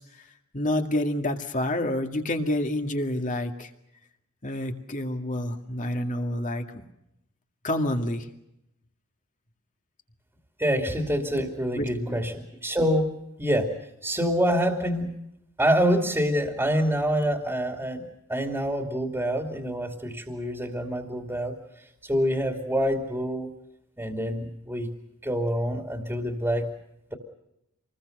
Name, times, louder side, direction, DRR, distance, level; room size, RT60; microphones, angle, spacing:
voice 1, 0.5-3.7 4.4-6.6 7.6-8.3 11.8-12.2, left 1 dB, 35° left, 4 dB, 2.2 m, -28 dB
voice 2, 10.6-13.1 13.4-13.7 14.0-15.1 15.6-21.5 22.0-23.5 24.0-24.9 25.2-26.7, equal, 10° right, 3 dB, 2.6 m, -26 dB
27.0 x 20.5 x 6.7 m, 0.82 s
head